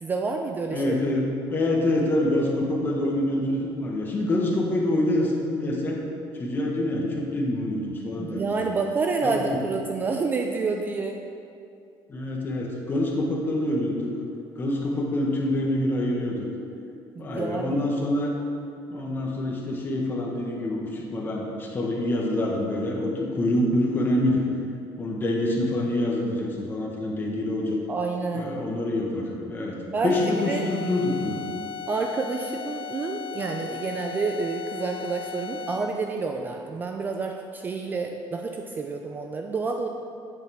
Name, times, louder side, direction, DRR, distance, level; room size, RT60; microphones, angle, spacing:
voice 1, 0.0-1.0 8.2-11.2 17.2-17.8 27.9-28.6 29.9-30.7 31.9-39.9, right 4 dB, 20° right, 3 dB, 0.4 m, -29 dB
voice 2, 0.7-6.0 6.4-8.7 9.2-9.6 12.1-14.1 14.6-16.5 17.2-18.3 18.9-24.4 25.0-27.8 28.3-29.8 30.0-31.4, left 1 dB, 25° left, -1 dB, 1.2 m, -26 dB
sound 1, 30.1-36.0, left 7 dB, 85° left, 1.0 m, -37 dB
8.4 x 7.9 x 3.4 m, 2.5 s
cardioid pair, 155°, 9 cm